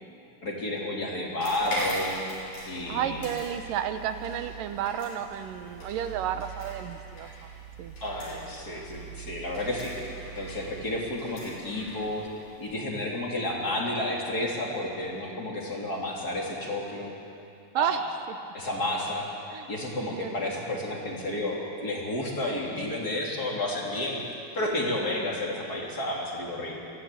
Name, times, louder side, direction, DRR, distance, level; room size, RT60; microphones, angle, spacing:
voice 1, 0.4-2.2 2.7-3.2 8.0-9.9 10.4-12.3 12.6-17.2 17.8-18.1 18.5-19.3 19.7-24.2 24.5-26.8, left 1 dB, 25° left, -2 dB, 3.4 m, -31 dB
sound 1, 1.4-12.7, right 2 dB, 65° left, 8.4 m, -41 dB
voice 2, 2.9-7.3 7.8-7.9 17.7-18.0 18.3-18.4 19.5-19.7 20.0-20.5, right 10 dB, 75° right, 9 dB, 2.5 m, -32 dB
23.5 x 16.5 x 9.3 m, 2.7 s
omnidirectional pair, 4.2 m